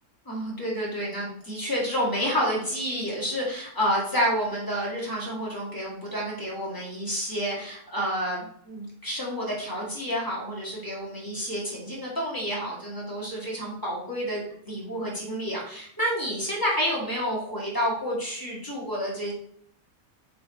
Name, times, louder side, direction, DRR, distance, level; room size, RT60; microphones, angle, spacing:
voice 1, 0.3-19.3, equal, 15° left, -5 dB, 2.2 m, -29 dB
7.3 x 4.1 x 3.3 m, 0.64 s
omnidirectional pair, 1.5 m